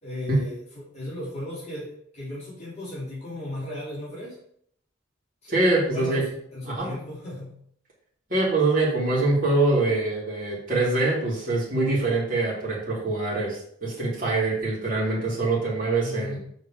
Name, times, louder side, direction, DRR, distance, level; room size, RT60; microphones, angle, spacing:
voice 1, 0.0-4.4 5.8-7.6 16.0-16.4, left 1 dB, 35° left, -8 dB, 3.4 m, -36 dB
voice 2, 5.5-6.2 6.6-6.9 8.3-16.4, right 2 dB, 45° right, -5 dB, 2.9 m, -24 dB
7.3 x 4.3 x 5.0 m, 0.67 s
head